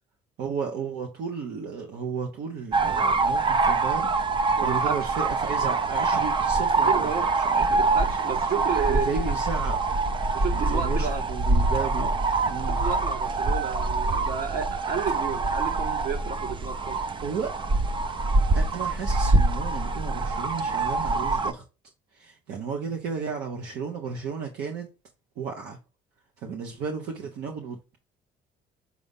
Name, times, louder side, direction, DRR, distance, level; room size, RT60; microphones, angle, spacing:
voice 1, 0.4-4.1 4.6-7.1 7.3-7.8 8.9-9.8 10.7-12.2 12.4-12.8 17.2-17.5 18.5-21.6 22.1-24.9 25.4-25.8 26.4-28.0, right 6 dB, 80° right, 1.2 m, -33 dB
sound 1, 2.7-21.5, right 3 dB, 30° right, 0.6 m, -25 dB
voice 2, 4.6-5.1 6.8-9.2 10.3-11.2 12.7-17.0, right 7 dB, 60° right, 1.9 m, -32 dB
6.7 x 4.1 x 3.6 m
cardioid pair, 110°, 17 cm